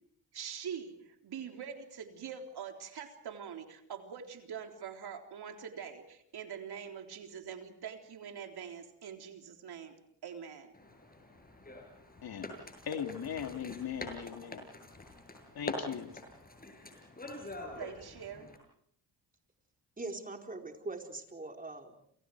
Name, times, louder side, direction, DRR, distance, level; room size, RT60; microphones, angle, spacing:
voice 1, 0.3-10.0 10.2-10.7 17.7-18.5, right 7 dB, 70° right, 4 dB, 3.9 m, -44 dB
sound 1, 10.7-18.6, left 2 dB, 20° left, 7.3 m, -45 dB
voice 2, 12.2-12.5 12.9-14.6 15.5-16.1, left 8 dB, 60° left, 5 dB, 2.8 m, -38 dB
voice 3, 20.0-22.0, right 2 dB, 20° right, 3 dB, 4.4 m, -42 dB
29.5 x 27.5 x 4.8 m, 0.69 s
cardioid pair, 90°, 41 cm